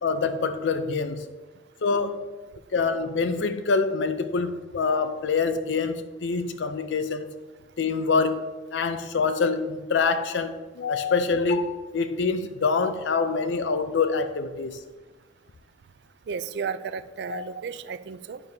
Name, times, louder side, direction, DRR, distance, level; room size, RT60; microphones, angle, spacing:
voice 1, 0.0-1.3 1.8-2.2 2.7-7.4 7.8-14.8 17.3-17.4, left 4 dB, 80° left, 0.5 m, -25 dB
voice 2, 16.3-18.4, right 6 dB, 60° right, 0.3 m, -33 dB
9.7 x 6.7 x 2.7 m
head